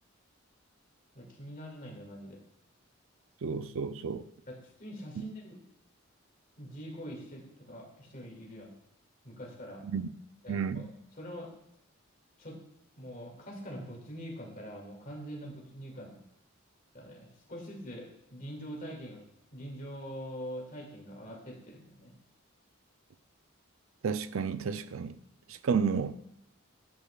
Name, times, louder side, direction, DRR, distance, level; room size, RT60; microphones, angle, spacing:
voice 1, 1.1-2.4 4.5-5.6 6.6-8.7 9.2-9.8 10.4-10.8 11.2-11.5 12.4-12.6 13.0-16.2 16.9-19.2 19.5-22.1, equal, 40° left, 2.2 m, -44 dB
voice 2, 3.4-4.2 5.2-5.3 9.8-10.1 10.5-10.9 24.0-25.2 25.5-26.2, right 6 dB, 75° right, 0.5 m, -31 dB
12.0 x 8.9 x 2.4 m
head